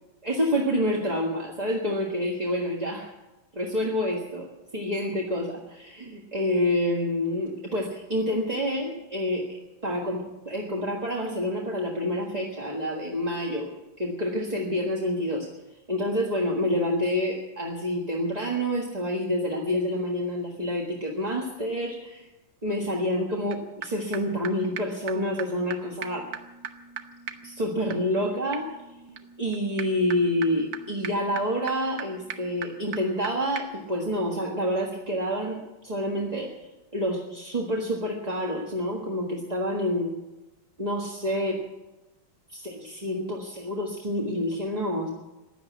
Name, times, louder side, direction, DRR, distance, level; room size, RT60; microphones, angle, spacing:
voice 1, 0.2-3.1 3.5-13.7 14.0-22.3 22.6-26.3 27.4-29.0 29.4-40.1 40.8-41.6 42.5-45.1, equal, 20° right, -1 dB, 1.5 m, -28 dB
sound 1, 23.5-23.6 23.8-23.9 24.1-24.2 24.4-24.5 24.8-24.9 25.1-25.2 25.4-25.5 25.7-25.8 26.0-33.3 33.6-33.7, right 8 dB, 70° right, 1.7 m, -40 dB
16.0 x 11.0 x 8.3 m, 1.0 s
omnidirectional pair, 2.2 m